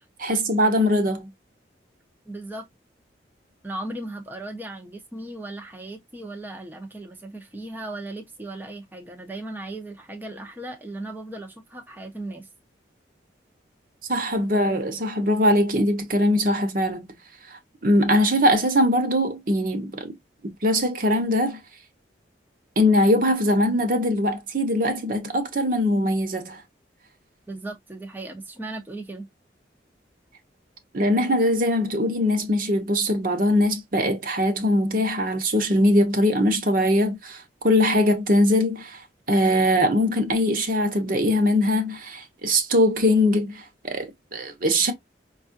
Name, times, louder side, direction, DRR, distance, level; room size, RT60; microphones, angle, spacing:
voice 1, 0.2-1.3 14.1-17.2 17.5-20.1 20.4-21.6 22.8-26.6 30.9-39.0 39.3-44.9, left 1 dB, 50° right, 0.9 m, -21 dB
voice 2, 2.3-2.7 3.6-12.5 27.5-29.3, right 2 dB, 10° right, 0.6 m, -37 dB
5.4 x 2.3 x 2.6 m
head